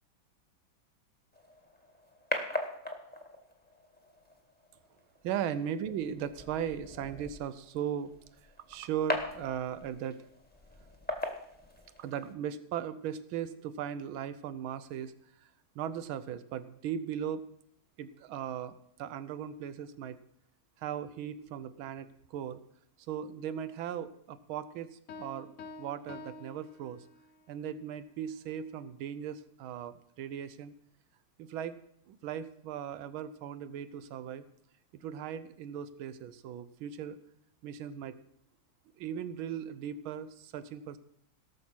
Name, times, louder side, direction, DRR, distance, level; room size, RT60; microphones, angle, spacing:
sound 1, 1.3-12.3, left 1 dB, 5° left, 1.2 m, -41 dB
voice 1, 5.2-8.1 8.7-10.2 12.0-15.1 15.7-17.5 18.0-20.2 20.8-22.6 23.1-25.5 25.8-27.0 27.5-30.7 31.4-31.8 32.1-34.4 35.0-37.2 37.6-38.1 39.0-41.0, right 9 dB, 85° right, 14 dB, 1.6 m, -38 dB
Piano, 25.1-27.5, left 2 dB, 65° left, 0.7 m, -48 dB
17.5 x 6.6 x 6.0 m, 0.71 s
omnidirectional pair, 2.2 m